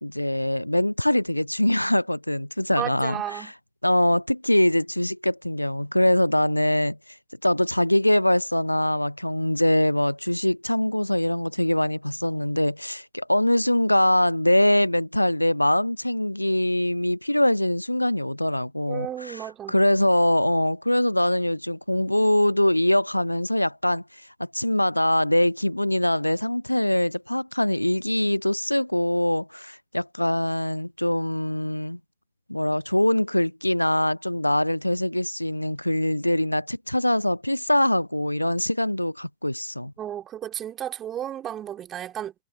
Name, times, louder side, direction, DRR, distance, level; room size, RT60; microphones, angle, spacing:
voice 1, 0.0-3.5 3.8-7.0 7.4-19.4 19.7-24.0 24.4-32.0 32.5-39.9, left 1 dB, 85° left, 0.4 m, -23 dB
voice 2, 2.8-3.5 18.9-19.7 40.0-42.3, right 10 dB, 30° right, 3.0 m, -33 dB
figure-of-eight pair, 90°, 0 cm